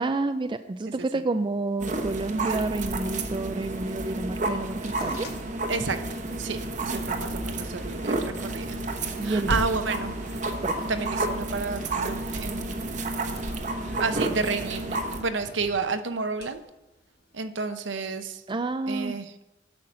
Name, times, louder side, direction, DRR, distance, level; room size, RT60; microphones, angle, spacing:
voice 1, 0.0-5.3 6.7-7.0 9.2-9.5 10.6-10.9 18.5-19.2, right 3 dB, 25° right, 9 dB, 0.4 m, -29 dB
voice 2, 0.9-1.2 5.7-6.1 6.4-8.8 9.2-10.1 10.9-13.0 13.8-16.6 17.3-18.4 18.9-19.3, right 4 dB, 70° right, 9 dB, 0.8 m, -31 dB
sound 1, 1.8-15.2, right 2 dB, 40° right, 1.0 m, -31 dB
in the freezer, 4.6-17.5, left 1 dB, 60° left, 1.3 m, -41 dB
10.5 x 5.7 x 7.6 m, 0.98 s
head